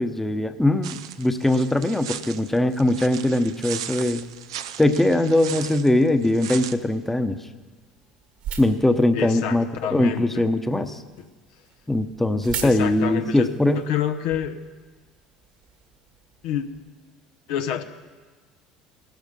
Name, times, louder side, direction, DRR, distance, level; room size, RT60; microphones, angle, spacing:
voice 1, 0.0-4.2 4.8-7.4 8.6-9.7 9.9-11.0 11.9-13.8, left 1 dB, 10° left, 8 dB, 1.0 m, -21 dB
sound 1, 0.8-6.8, right 10 dB, 80° right, 0.6 m, -37 dB
sound 2, 4.2-16.8, right 8 dB, 65° right, 2.0 m, -43 dB
voice 2, 9.1-10.4 12.6-13.5 13.7-14.6 16.4-16.7 17.5-17.8, left 10 dB, 70° left, 7 dB, 1.0 m, -28 dB
17.5 x 13.0 x 5.5 m, 1.4 s
hypercardioid pair, 70°, 3 cm